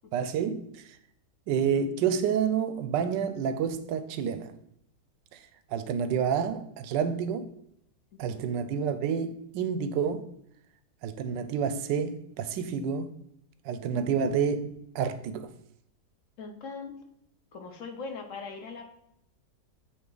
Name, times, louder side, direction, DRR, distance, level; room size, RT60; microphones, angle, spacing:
voice 1, 0.1-0.9 1.5-4.5 5.3-5.4 5.7-7.5 8.2-10.2 11.0-13.1 13.6-15.5, right 7 dB, 80° right, 1.2 m, -29 dB
voice 2, 8.1-8.5 16.4-16.9 17.5-18.8, left 4 dB, 55° left, 1.1 m, -40 dB
8.8 x 2.9 x 3.8 m
omnidirectional pair, 1.9 m